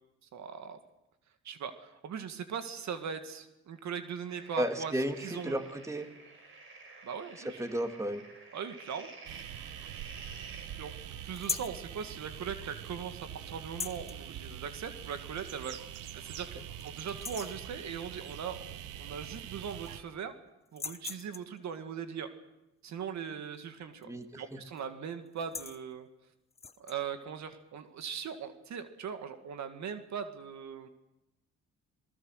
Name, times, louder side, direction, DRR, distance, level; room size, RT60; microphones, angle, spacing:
voice 1, 0.3-0.8 1.4-4.9 5.2-5.5 7.0-7.6 8.5-9.1 10.8-15.8 16.1-20.3 20.7-22.3 22.8-26.1 26.8-30.9, right 7 dB, 65° right, 8 dB, 2.0 m, -40 dB
sound 1, 4.3-11.0, right 3 dB, 40° right, 6.0 m, -52 dB
voice 2, 4.6-6.1 7.4-8.2 24.1-24.3, equal, 10° right, 6 dB, 2.2 m, -33 dB
sound 2, 9.3-20.0, right 10 dB, 90° right, 1.1 m, -44 dB
sound 3, 11.3-11.8 13.6-14.2 15.5-15.6 16.1-16.2 16.6-16.8 17.1-17.6 19.0-19.1 19.4-20.1 20.7-21.6 23.9-24.2 24.5-24.8 25.3-25.8 26.5-27.0, left 4 dB, 20° left, 0.8 m, -40 dB
26.5 x 19.5 x 6.5 m, 0.92 s
cardioid pair, 90°, 30 cm